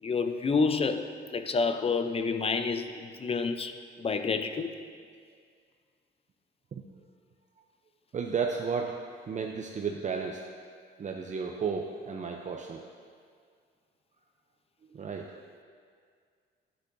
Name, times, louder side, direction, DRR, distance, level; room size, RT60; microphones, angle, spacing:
voice 1, 0.0-4.7, left 4 dB, 30° left, 9 dB, 0.5 m, -29 dB
voice 2, 8.1-9.0 9.3-10.4 11.0-12.8 14.9-15.3, right 5 dB, 35° right, 2 dB, 0.6 m, -33 dB
10.0 x 9.9 x 2.6 m, 2.1 s
cardioid pair, 90°, 20 cm